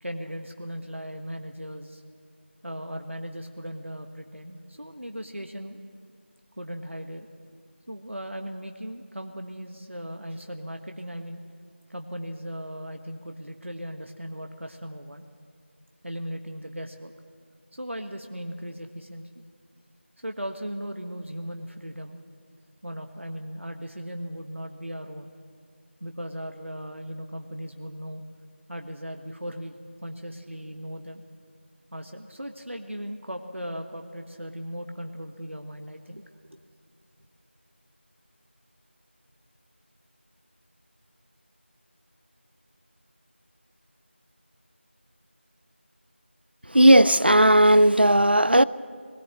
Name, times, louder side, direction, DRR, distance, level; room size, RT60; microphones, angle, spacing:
voice 1, 0.0-2.0 2.6-5.8 6.6-7.3 7.9-11.4 11.9-15.2 16.0-17.1 17.7-19.4 20.2-22.2 22.8-25.3 26.0-28.2 28.7-31.2 31.9-36.2 36.5-36.6, equal, 85° right, 1.5 m, -37 dB
voice 2, 46.7-48.6, right 1 dB, 55° right, 0.5 m, -16 dB
21.0 x 18.5 x 7.8 m
figure-of-eight pair, 180°, 6 cm